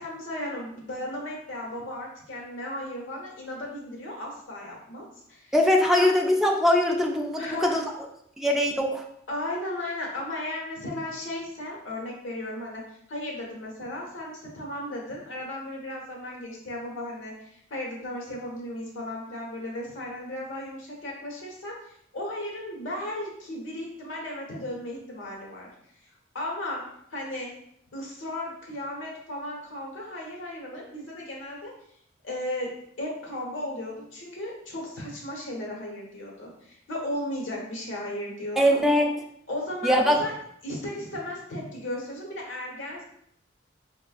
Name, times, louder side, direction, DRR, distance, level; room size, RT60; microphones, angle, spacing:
voice 1, 0.0-5.5 5.8-6.1 7.4-7.8 9.3-12.8 13.1-25.7 26.0-26.1 26.3-26.8 27.1-27.5 27.9-31.7 32.2-32.7 33.0-38.8 39.5-40.3 40.6-43.0, left 1 dB, 85° left, -2 dB, 1.1 m, -35 dB
voice 2, 5.5-7.8 8.4-9.0 38.6-39.1 39.8-40.2, left 1 dB, ahead, 0 dB, 0.3 m, -22 dB
4.7 x 2.4 x 2.4 m, 0.71 s
head